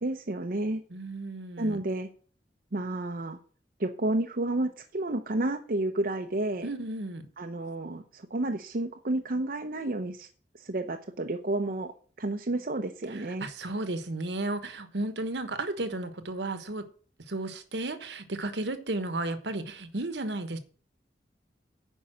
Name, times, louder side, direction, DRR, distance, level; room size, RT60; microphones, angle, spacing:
voice 1, 0.0-0.8 1.6-2.1 2.7-3.4 3.8-6.7 7.4-10.3 10.5-11.9 12.2-13.5, right 2 dB, 50° right, 0.7 m, -31 dB
voice 2, 0.9-1.8 6.6-7.3 13.1-16.9 17.3-20.6, right 2 dB, 70° right, 1.2 m, -34 dB
9.4 x 5.4 x 7.6 m
head